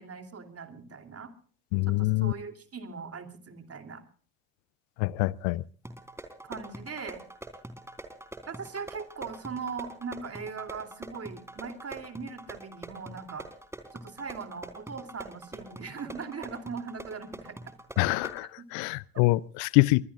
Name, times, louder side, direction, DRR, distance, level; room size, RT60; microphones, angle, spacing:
voice 1, 0.0-1.3 1.9-4.0 6.4-7.2 8.5-13.5 13.9-17.6 18.2-18.3 18.6-18.7, right 5 dB, 30° right, 2.9 m, -40 dB
voice 2, 1.7-2.3 5.0-5.6 18.0-20.0, left 22 dB, 65° left, 0.6 m, -25 dB
sound 1, 5.9-18.4, right 1 dB, 5° right, 3.7 m, -45 dB
23.5 x 21.0 x 2.4 m
figure-of-eight pair, 55°, 45 cm